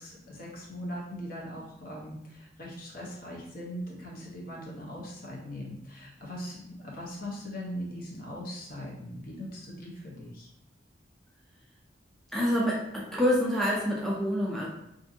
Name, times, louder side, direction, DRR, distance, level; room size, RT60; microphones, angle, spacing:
voice 1, 0.0-10.5, equal, 55° left, -3 dB, 0.7 m, -40 dB
voice 2, 12.3-14.7, equal, ahead, -4 dB, 0.4 m, -27 dB
2.6 x 2.5 x 2.6 m, 0.80 s
head